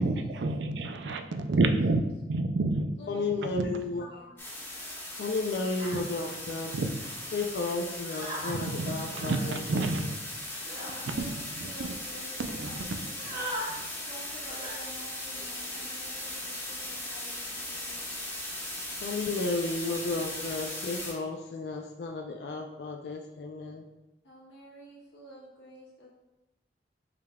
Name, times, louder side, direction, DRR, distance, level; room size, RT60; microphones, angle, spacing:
voice 1, 0.0-2.9 3.4-3.6 6.7-6.9 8.4-10.0 11.2-12.0 12.4-13.4, right 3 dB, 90° right, 7 dB, 0.4 m, -30 dB
voice 2, 0.6-1.8 3.0-4.3 10.7-13.5 14.1-18.2 24.2-26.1, equal, 90° left, -5 dB, 1.3 m, -50 dB
voice 3, 3.1-4.3 5.2-6.7 7.3-10.1 19.0-23.9, left 3 dB, 65° left, 3 dB, 0.4 m, -33 dB
sound 1, 4.4-21.1, left 1 dB, 15° left, 0.9 m, -38 dB
sound 2, 5.8-6.0 7.0-7.2 8.0-8.6 9.1-9.5 10.6-11.0 11.6-11.7 11.9-12.2 13.0-13.7 14.5-14.8 15.3-15.7, equal, 50° right, 1.2 m, -39 dB
5.0 x 3.5 x 2.2 m, 0.95 s
head